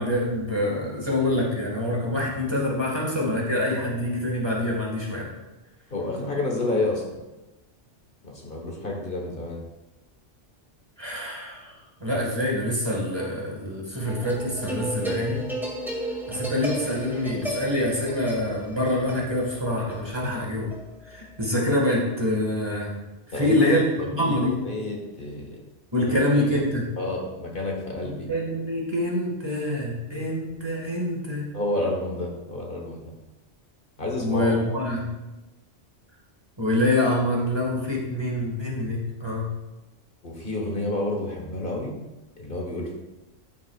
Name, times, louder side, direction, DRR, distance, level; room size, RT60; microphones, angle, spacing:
voice 1, 0.0-5.3 11.0-15.4 16.3-20.7 21.1-23.0 23.3-24.6 25.9-26.9 28.0-31.5 34.2-35.1 36.6-39.5, left 1 dB, 20° right, -3 dB, 1.8 m, -26 dB
voice 2, 5.9-7.2 8.2-9.6 20.2-20.4 23.3-25.6 26.0-26.6 27.0-28.3 31.5-33.0 34.0-34.8 40.2-41.9 42.4-42.9, left 2 dB, 50° left, -1 dB, 1.6 m, -30 dB
sound 1, 14.0-21.4, equal, ahead, 1.6 m, -34 dB
13.5 x 7.4 x 2.4 m, 1.0 s
omnidirectional pair, 1.2 m